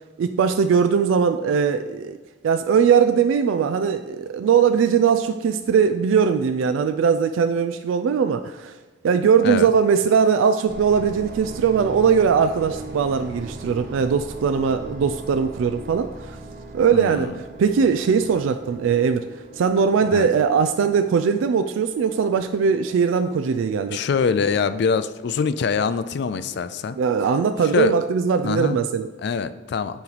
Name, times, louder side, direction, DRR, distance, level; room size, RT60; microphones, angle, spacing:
voice 1, 0.2-2.2 2.4-8.7 9.0-16.4 16.7-17.3 17.6-19.3 19.6-24.0 27.0-29.1, right 6 dB, 80° right, 8 dB, 0.3 m, -20 dB
sound 1, 10.7-27.3, right 2 dB, 50° right, 1.0 m, -40 dB
voice 2, 16.9-17.3 20.1-20.3 23.9-27.0 27.6-27.9 28.4-28.8 29.2-30.0, left 5 dB, 60° left, 13 dB, 0.3 m, -24 dB
8.7 x 3.1 x 4.0 m, 1.3 s
head